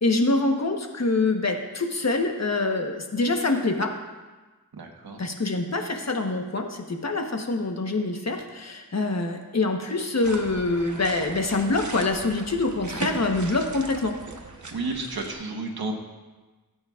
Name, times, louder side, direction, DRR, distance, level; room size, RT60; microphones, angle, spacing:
voice 1, 0.0-3.9 5.2-14.1, left 2 dB, 45° left, 3 dB, 1.2 m, -25 dB
voice 2, 4.7-5.2 14.7-15.9, right 3 dB, 80° right, 2 dB, 1.4 m, -32 dB
sound 1, 10.2-15.3, right 3 dB, 50° right, 1.1 m, -38 dB
17.0 x 8.5 x 2.5 m, 1.2 s
wide cardioid pair, 85°, 37 cm